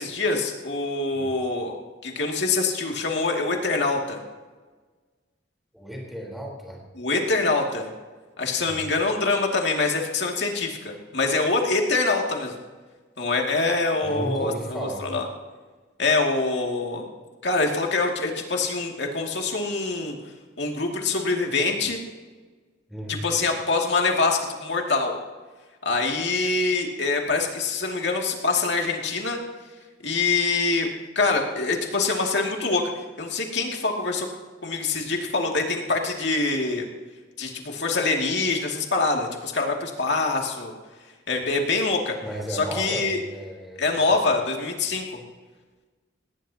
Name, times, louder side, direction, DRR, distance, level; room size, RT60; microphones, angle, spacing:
voice 1, 0.0-1.8 2.0-4.2 7.0-7.9 8.4-12.5 13.2-15.3 16.0-17.1 17.4-20.2 20.6-22.0 23.1-25.1 25.8-29.4 30.0-30.9 31.2-32.8 33.2-34.3 34.6-36.9 37.4-40.7 41.3-42.2 42.5-43.2 43.8-45.2, left 3 dB, 65° left, 1 dB, 2.5 m, -25 dB
voice 2, 5.7-6.8 8.7-8.8 14.0-15.1 22.9-23.2 42.2-44.1, right 1 dB, ahead, -1 dB, 4.0 m, -34 dB
18.5 x 18.5 x 2.9 m, 1.4 s
head